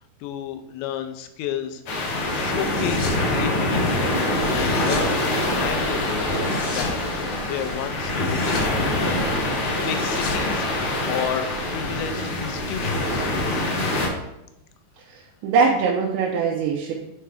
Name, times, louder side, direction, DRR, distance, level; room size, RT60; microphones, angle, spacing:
voice 1, 0.2-1.8 2.3-13.4, left 8 dB, 90° left, 7 dB, 2.9 m, -32 dB
sound 1, 1.9-14.1, left 1 dB, 65° left, 1.9 m, -24 dB
sound 2, 2.5-3.3 4.4-5.1 6.3-7.0 8.0-8.8 9.7-11.3, left 3 dB, 45° left, 2.9 m, -34 dB
voice 2, 15.1-16.9, right 5 dB, 90° right, -4 dB, 3.1 m, -22 dB
7.7 x 3.4 x 5.0 m, 0.87 s
omnidirectional pair, 5.2 m